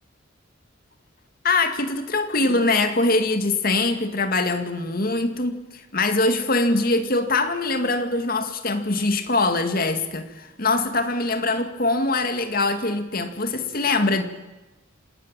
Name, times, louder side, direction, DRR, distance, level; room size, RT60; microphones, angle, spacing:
voice 1, 1.4-14.2, left 2 dB, 45° left, 7 dB, 2.2 m, -23 dB
27.5 x 13.5 x 9.0 m, 1.1 s
head